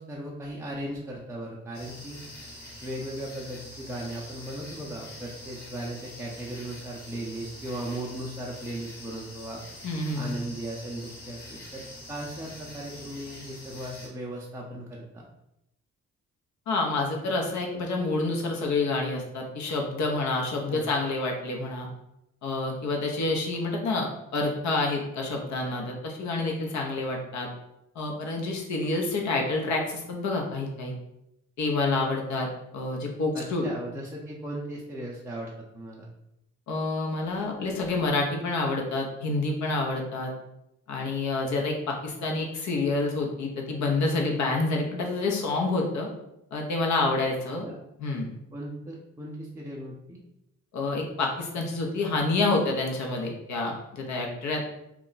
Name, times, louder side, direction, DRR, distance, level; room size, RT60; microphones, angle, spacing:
voice 1, 0.0-2.2 2.8-9.6 10.2-15.2 20.7-20.9 33.3-36.1 47.6-47.8 48.5-50.2, right 1 dB, 10° right, -4 dB, 0.4 m, -37 dB
sound 1, 1.7-14.1, left 1 dB, 30° left, 1.0 m, -45 dB
voice 2, 9.8-10.3 16.7-21.9 22.4-27.5 28.0-30.9 31.6-32.5 32.7-33.7 36.7-40.3 40.9-46.1 46.5-47.7 48.0-48.3 50.7-54.7, left 3 dB, 70° left, 0 dB, 0.7 m, -28 dB
2.3 x 2.1 x 3.8 m, 0.85 s
cardioid pair, 90°, 30 cm